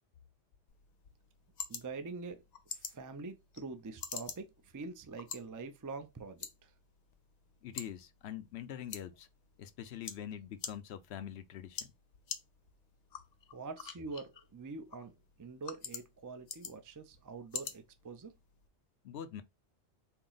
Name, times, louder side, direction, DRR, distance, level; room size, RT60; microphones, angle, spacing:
sound 1, 0.7-18.7, left 6 dB, 55° left, 0.5 m, -48 dB
voice 1, 1.7-2.4 2.7-6.7 13.5-18.3, right 4 dB, 30° right, 0.3 m, -45 dB
voice 2, 7.6-9.3 9.6-11.9 19.0-19.4, left 10 dB, 75° left, 0.9 m, -44 dB
4.4 x 2.0 x 3.9 m
omnidirectional pair, 1.1 m